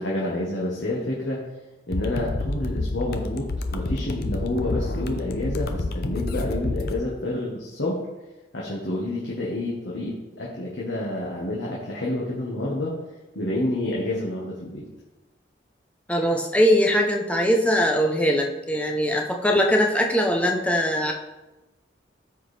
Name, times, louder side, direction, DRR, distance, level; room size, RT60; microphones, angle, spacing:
voice 1, 0.0-1.4 1.9-8.0 8.5-12.9 13.3-14.9, left 1 dB, 85° left, -5 dB, 1.5 m, -29 dB
sound 1, 1.9-6.9, left 2 dB, 60° left, 0.7 m, -29 dB
voice 2, 16.1-21.1, equal, 5° left, 1 dB, 0.8 m, -21 dB
13.5 x 4.8 x 3.4 m, 1.1 s
head